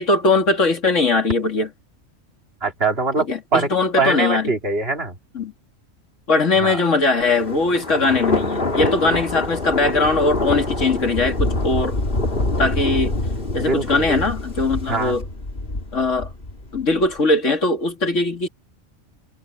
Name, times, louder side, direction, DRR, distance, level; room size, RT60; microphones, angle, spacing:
voice 1, 0.0-1.7 3.2-4.5 5.3-5.5 6.3-12.0 12.6-13.1 13.5-15.2 15.9-16.3 16.7-18.5, left 3 dB, 65° left, 2.8 m, -20 dB
voice 2, 2.6-5.2 6.6-6.8 13.5-14.2 14.9-15.1, right 3 dB, 50° right, 3.1 m, -23 dB
Thunder, 7.2-17.1, left 2 dB, 40° left, 3.3 m, -25 dB
omnidirectional pair, 1.4 m